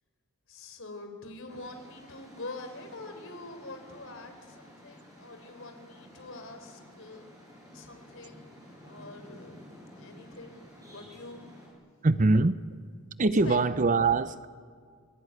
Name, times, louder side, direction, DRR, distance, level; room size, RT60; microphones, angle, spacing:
voice 1, 0.5-7.3 7.7-8.5 8.8-11.4 13.4-13.6, left 2 dB, 60° left, 4.0 m, -45 dB
sound 1, 1.5-11.7, equal, 15° right, 7.6 m, -52 dB
voice 2, 12.0-12.6 13.2-14.5, right 3 dB, 35° right, 0.6 m, -23 dB
28.5 x 19.0 x 9.5 m
head